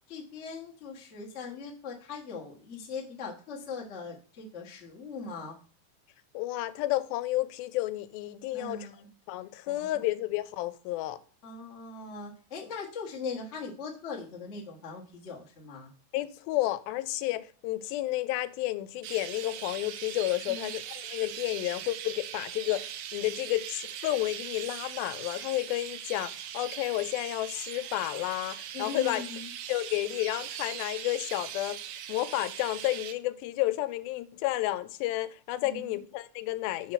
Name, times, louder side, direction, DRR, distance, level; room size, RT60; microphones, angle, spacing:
voice 1, 0.1-5.6 8.5-9.1 9.7-10.0 11.4-15.9 20.5-20.7 28.7-29.5 35.6-36.0, left 4 dB, 60° left, 0.7 m, -40 dB
voice 2, 6.3-8.9 9.3-11.2 16.1-29.2 29.7-31.8 32.1-36.9, left 16 dB, 85° left, 2.4 m, -31 dB
Chirp tweet, 19.0-33.1, right 10 dB, 80° right, 1.8 m, -40 dB
7.0 x 4.5 x 5.7 m
omnidirectional pair, 4.2 m